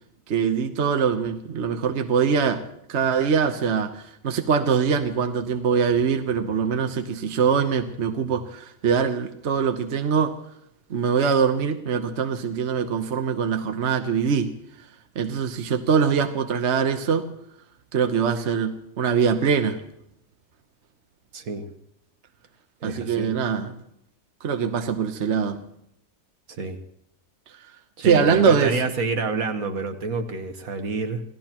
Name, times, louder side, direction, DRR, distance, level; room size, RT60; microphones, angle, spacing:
voice 1, 0.3-2.6 2.9-10.3 10.9-14.5 15.1-17.3 17.9-19.8 22.8-23.7 24.4-25.6 28.0-28.8, right 6 dB, 50° right, 6 dB, 1.2 m, -23 dB
voice 2, 21.3-21.7 22.8-23.3 26.5-26.8 28.0-31.2, right 4 dB, 65° right, 7 dB, 1.7 m, -28 dB
28.0 x 17.0 x 3.0 m, 0.73 s
omnidirectional pair, 1.6 m